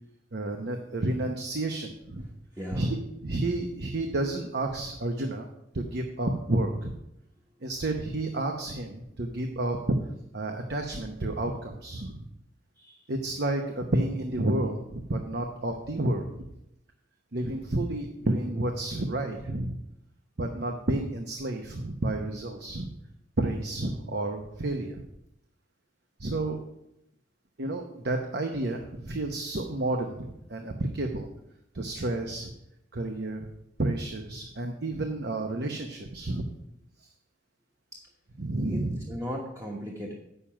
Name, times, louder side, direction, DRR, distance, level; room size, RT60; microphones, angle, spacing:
voice 1, 0.3-2.2 2.7-3.0 3.2-5.5 5.7-6.9 7.6-10.0 10.3-12.3 13.1-16.4 17.3-19.8 20.4-22.9 23.4-25.0 26.2-26.6 27.6-31.3 31.7-32.5 32.9-33.5 33.8-36.5 37.0-37.1 38.4-39.0, right 2 dB, 60° right, 4 dB, 0.9 m, -30 dB
voice 2, 2.6-3.0 12.8-13.1 37.9-38.0 38.6-40.1, equal, 20° right, -1 dB, 1.1 m, -37 dB
8.8 x 6.8 x 5.7 m, 0.82 s
head